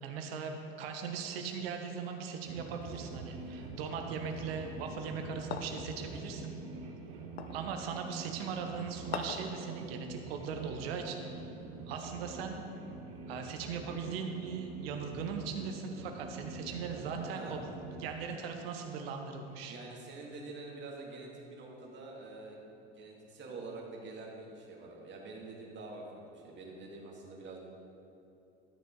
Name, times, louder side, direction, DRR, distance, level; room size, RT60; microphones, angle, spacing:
voice 1, 0.0-6.6 7.5-11.3 11.9-12.6 13.3-17.7 18.0-19.8, right 6 dB, 70° right, 4 dB, 1.2 m, -39 dB
sound 1, 2.4-18.1, right 3 dB, 50° right, 1.3 m, -46 dB
sound 2, 5.5-5.9 7.4-7.7 9.1-9.5, left 7 dB, 80° left, 0.7 m, -39 dB
voice 2, 17.2-17.6 19.7-27.6, right 3 dB, 35° right, -2 dB, 2.2 m, -46 dB
12.5 x 6.4 x 3.9 m, 2.9 s
hypercardioid pair, 85°, 31 cm